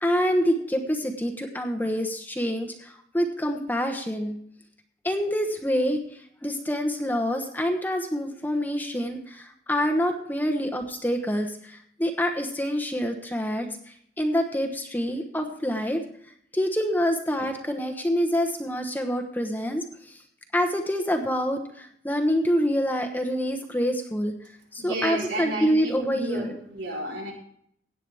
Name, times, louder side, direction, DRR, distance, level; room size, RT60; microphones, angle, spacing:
voice 1, 0.0-4.4 5.0-13.7 14.2-16.0 16.5-20.2 20.5-24.3 24.7-26.6, equal, 10° left, 4 dB, 1.0 m, -26 dB
voice 2, 24.8-27.3, right 1 dB, 75° right, -2 dB, 4.3 m, -32 dB
16.5 x 9.2 x 3.5 m, 0.67 s
head